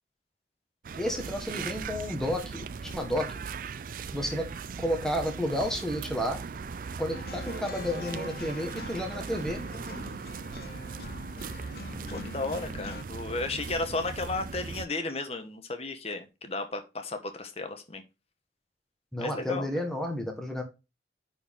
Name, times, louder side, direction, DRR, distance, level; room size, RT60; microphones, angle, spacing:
sound 1, 0.8-14.9, right 5 dB, 50° right, 0.4 m, -39 dB
voice 1, 1.0-3.3 4.1-4.5 4.8-6.4 7.0-9.6 19.1-20.6, equal, 5° left, 3 dB, 1.5 m, -31 dB
sound 2, 7.1-13.0, left 4 dB, 55° left, 0.7 m, -44 dB
voice 2, 12.1-18.0 19.2-19.7, left 3 dB, 35° left, 7 dB, 1.2 m, -34 dB
9.9 x 4.6 x 3.6 m, 0.27 s
head